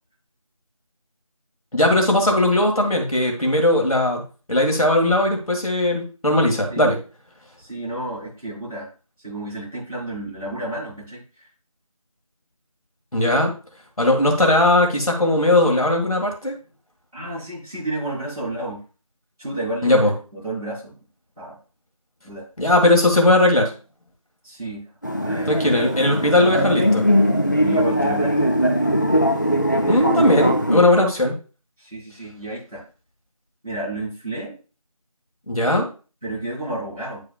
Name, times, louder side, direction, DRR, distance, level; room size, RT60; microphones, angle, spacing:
voice 1, 1.7-4.2 4.5-7.0 13.1-13.6 14.0-16.6 19.8-20.1 22.6-23.7 25.5-27.0 29.9-31.3 35.5-35.9, left 1 dB, 75° left, 1 dB, 1.9 m, -18 dB
voice 2, 7.6-8.9 9.2-11.5 17.1-18.8 19.4-20.1 20.3-21.0 21.4-21.6 22.2-22.5 24.4-24.8 25.2-25.7 27.6-28.5 29.7-30.1 31.8-32.8 33.6-34.5 36.2-37.2, right 2 dB, 10° right, -16 dB, 3.9 m, -31 dB
sound 1, 25.0-30.8, equal, 30° left, 0.5 m, -20 dB
9.9 x 4.8 x 2.4 m, 0.35 s
figure-of-eight pair, 175°, 19 cm